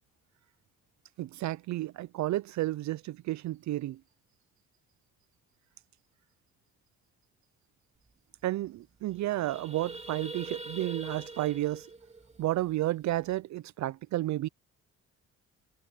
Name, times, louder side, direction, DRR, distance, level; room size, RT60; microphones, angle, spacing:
voice 1, 1.2-4.0 8.4-11.9 12.4-14.5, right 15 dB, 70° right, 0.5 m, -32 dB
sound 1, 8.1-8.2 8.4-8.6 9.0-13.3, right 2 dB, 20° right, 2.3 m, -44 dB
cardioid pair, 90°, 30 cm